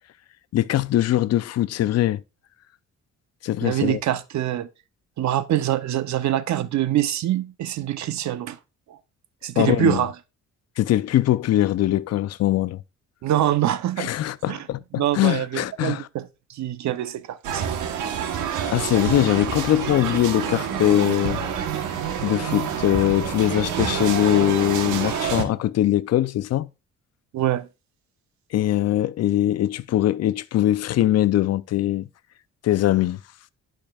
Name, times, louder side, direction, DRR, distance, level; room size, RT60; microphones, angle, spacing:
voice 1, 0.5-2.2 3.4-4.0 9.6-10.0 10.8-12.8 14.0-16.0 18.7-21.4 22.2-26.7 28.5-32.1 32.6-33.2, left 13 dB, 55° left, 0.5 m, -22 dB
voice 2, 3.6-4.7 5.2-8.6 8.9-9.0 9.4-10.1 13.2-14.1 14.5-14.7 15.0-17.6 27.3-27.7, right 12 dB, 65° right, 0.7 m, -24 dB
sound 1, 17.4-25.4, right 8 dB, 85° right, 1.1 m, -27 dB
sound 2, 19.5-20.6 21.2-22.3 22.9-24.1, left 1 dB, ahead, 2.2 m, -37 dB
11.5 x 5.0 x 2.3 m
cardioid pair, 90°, 30 cm